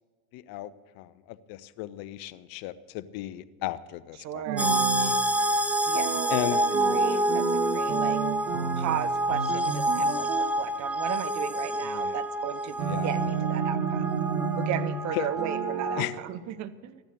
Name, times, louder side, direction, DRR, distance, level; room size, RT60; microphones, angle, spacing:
voice 1, 0.3-5.2 6.3-6.6 11.8-12.2 12.8-13.4 15.1-15.3 16.0-16.2, left 14 dB, 45° left, 15 dB, 0.8 m, -35 dB
voice 2, 4.2-4.7 5.9-6.2 6.5-6.6 6.9-8.2 8.8-14.2 14.6-17.0, right 11 dB, 35° right, 14 dB, 0.9 m, -35 dB
sound 1, 4.5-5.2 5.9-9.0 9.3-10.5 12.8-15.0 15.4-16.1, right 6 dB, 70° right, 1.6 m, -31 dB
sound 2, 4.6-16.0, right 1 dB, 5° right, 0.7 m, -28 dB
14.0 x 10.5 x 6.6 m, 1.5 s
hypercardioid pair, 95°, 48 cm